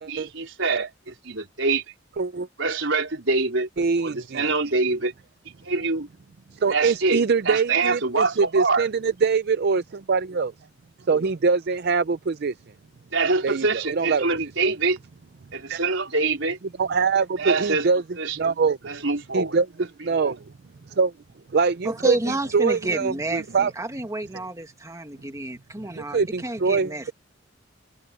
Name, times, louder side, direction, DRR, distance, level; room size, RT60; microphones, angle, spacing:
voice 1, 0.1-1.8 2.6-3.7 4.0-5.1 5.6-6.1 6.7-8.9 13.1-15.0 15.5-16.6 17.4-17.9 18.2-18.5 18.9-19.6 20.2-20.4, right 3 dB, 85° right, 3.8 m, -25 dB
voice 2, 2.2-2.5 3.8-4.5 6.5-10.5 11.1-12.5 13.4-14.2 15.7-15.8 16.8-18.0 18.4-18.8 19.3-19.7 20.0-20.3 21.0-21.1 21.5-23.7 25.9-26.9, right 5 dB, 60° right, 0.5 m, -23 dB
voice 3, 21.8-27.1, right 1 dB, 15° right, 2.2 m, -30 dB
head